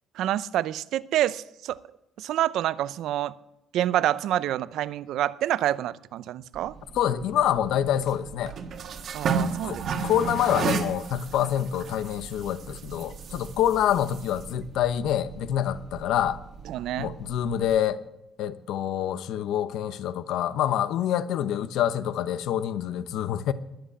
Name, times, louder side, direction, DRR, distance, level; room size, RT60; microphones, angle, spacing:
voice 1, 0.1-1.8 2.2-3.4 3.7-6.8 9.1-9.8 16.7-17.1, right 12 dB, 75° right, 0.6 m, -27 dB
sound 1, 6.5-17.8, right 5 dB, 45° right, 1.5 m, -34 dB
voice 2, 6.9-8.5 9.5-16.4 17.0-18.0 18.4-23.5, left 10 dB, 80° left, 0.9 m, -26 dB
20.5 x 8.0 x 8.5 m
cardioid pair, 170°, 0 cm